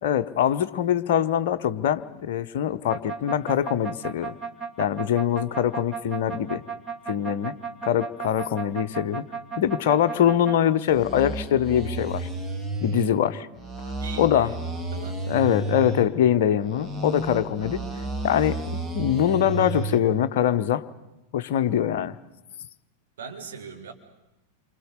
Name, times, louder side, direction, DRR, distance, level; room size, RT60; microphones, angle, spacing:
voice 1, 0.0-4.3 4.8-6.6 7.1-7.5 7.8-9.2 9.6-12.3 12.8-13.5 13.8-14.5 15.3-17.8 18.2-18.6 18.9-20.9 21.3-22.2, left 10 dB, 50° left, 9 dB, 0.9 m, -23 dB
sound 1, 2.9-10.6 10.9-13.1 13.6-16.1 16.6-20.0, right 3 dB, 10° right, 2.3 m, -32 dB
voice 2, 13.9-15.2 23.2-23.9, right 5 dB, 60° right, 3 dB, 3.2 m, -40 dB
28.0 x 25.5 x 6.7 m, 0.93 s
figure-of-eight pair, 90°, 0 cm